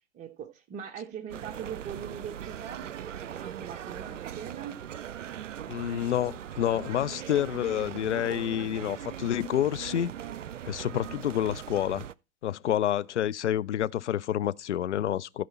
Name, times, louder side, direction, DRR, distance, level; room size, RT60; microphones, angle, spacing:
voice 1, 0.1-2.9 3.2-4.8, right 8 dB, 20° right, 1.0 m, -41 dB
sound 1, 1.3-12.1, right 10 dB, 75° right, 0.5 m, -40 dB
voice 2, 5.7-10.1 10.7-12.0 12.4-15.4, left 11 dB, 65° left, 0.6 m, -28 dB
14.5 x 5.0 x 4.3 m
figure-of-eight pair, 110°, 38 cm